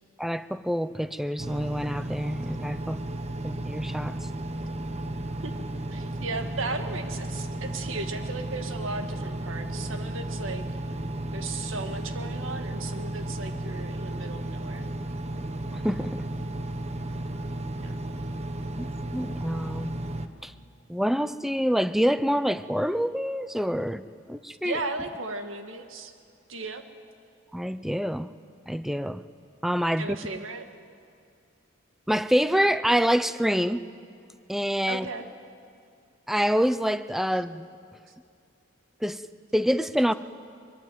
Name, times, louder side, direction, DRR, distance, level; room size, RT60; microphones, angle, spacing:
voice 1, 0.2-3.0 3.4-4.2 15.7-16.2 18.8-20.0 20.4-20.5 20.9-24.0 24.3-24.8 27.5-28.3 28.7-29.2 29.6-30.4 32.1-33.8 34.5-35.1 36.3-37.7 39.0-39.2 39.5-40.1, equal, ahead, 13 dB, 0.6 m, -26 dB
Engine, 1.4-20.3, right 1 dB, 35° right, 1.2 m, -34 dB
voice 2, 5.9-10.6 11.3-14.9 17.8-18.1 24.6-26.1 26.5-26.8 30.0-30.7 34.9-35.3, right 3 dB, 85° right, 7 dB, 1.8 m, -36 dB
23.5 x 22.5 x 9.2 m, 2.3 s
head